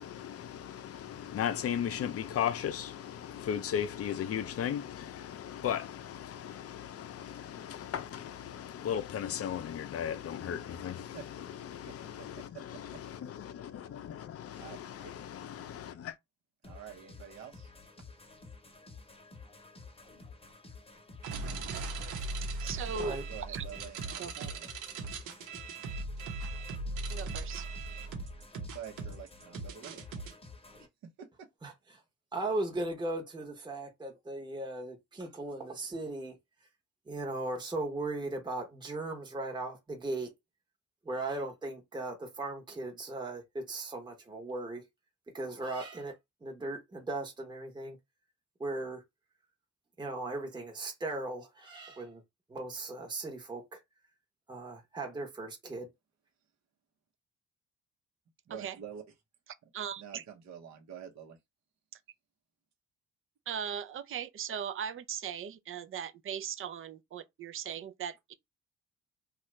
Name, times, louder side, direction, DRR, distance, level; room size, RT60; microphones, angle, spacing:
voice 1, 0.0-16.2, left 9 dB, 50° left, 0.6 m, -37 dB
voice 2, 12.3-13.0 14.6-15.3 16.6-17.7 23.3-24.7 28.7-30.1 31.0-31.5 58.5-59.0 60.0-61.4, right 8 dB, 60° right, 0.9 m, -47 dB
sound 1, 16.6-30.9, left 3 dB, 20° left, 0.9 m, -52 dB
sound 2, 21.2-30.3, right 3 dB, 90° right, 1.0 m, -39 dB
voice 3, 22.6-23.2 23.5-23.6 24.2-24.5 27.1-27.7 58.5-58.8 59.7-60.2 63.5-68.3, right 7 dB, 45° right, 0.5 m, -38 dB
voice 4, 32.3-36.3 37.1-40.3 41.0-44.9 45.3-46.1 46.4-48.0 48.6-49.0 50.0-52.2 52.5-53.8 54.5-55.9, right 2 dB, 15° right, 0.9 m, -37 dB
2.8 x 2.4 x 3.2 m
cardioid pair, 90°, 30 cm